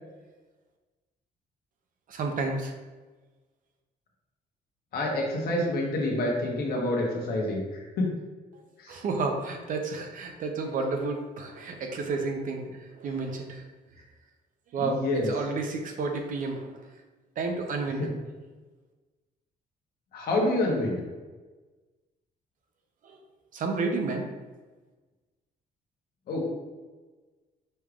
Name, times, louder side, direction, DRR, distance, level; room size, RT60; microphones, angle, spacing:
voice 1, 2.1-2.7 8.9-13.7 14.7-16.9 17.4-18.1 23.0-23.2 23.5-24.3, right 3 dB, 55° right, 3 dB, 0.6 m, -31 dB
voice 2, 4.9-8.1 8.8-9.0 14.8-15.3 18.0-18.1 20.1-21.0 26.3-26.4, left 1 dB, 65° left, -1 dB, 1.0 m, -27 dB
5.3 x 3.3 x 2.4 m, 1.3 s
cardioid pair, 165°, 17 cm